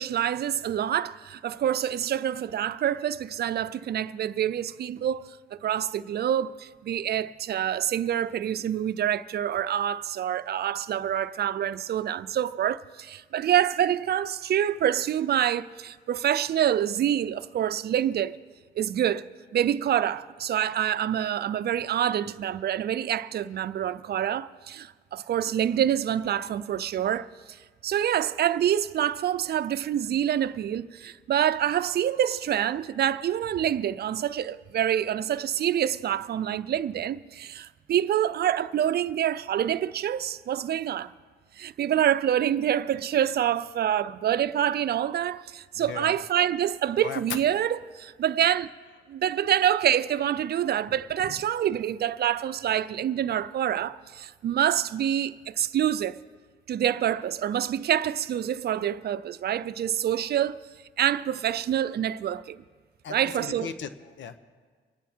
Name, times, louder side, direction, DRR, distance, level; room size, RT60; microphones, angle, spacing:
voice 1, 0.0-18.4 18.8-19.3 19.5-27.6 27.8-41.1 41.6-48.7 49.1-56.2 56.7-60.6 61.0-62.6 63.1-63.7, right 10 dB, 55° right, 0.5 m, -26 dB
voice 2, 45.8-46.1 47.0-47.2 51.2-51.4 63.0-64.4, left 7 dB, 70° left, 1.0 m, -38 dB
25.0 x 9.2 x 4.5 m
cardioid pair, 90°, 20 cm